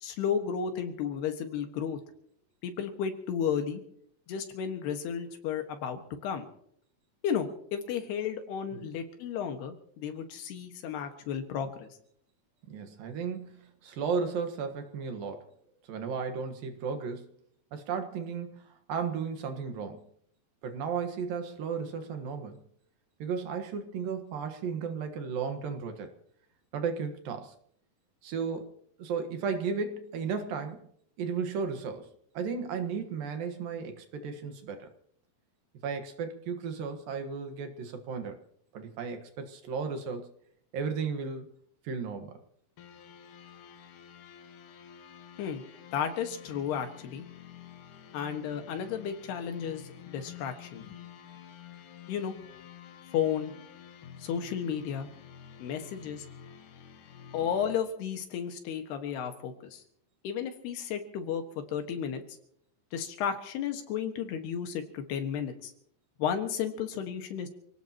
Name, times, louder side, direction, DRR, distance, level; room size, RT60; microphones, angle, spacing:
voice 1, 0.0-2.0 2.6-3.8 4.3-6.5 7.2-11.9 45.4-45.6 45.9-47.2 48.1-50.9 52.1-52.3 53.1-53.5 54.2-55.1 55.6-56.3 57.3-59.8 60.2-62.2 62.9-65.7 66.2-67.5, left 8 dB, 90° left, 6 dB, 3.7 m, -33 dB
voice 2, 12.7-15.5 15.8-17.3 17.7-20.0 20.6-22.6 23.2-26.1 26.7-27.5 28.2-28.7 29.0-30.8 31.2-32.1 32.3-34.9 35.8-38.4 38.7-40.3 40.7-41.5 41.8-42.4, right 5 dB, 65° right, 6 dB, 3.0 m, -34 dB
sound 1, 42.8-57.8, left 9 dB, 65° left, 2.4 m, -50 dB
28.0 x 17.5 x 3.0 m, 0.69 s
omnidirectional pair, 4.5 m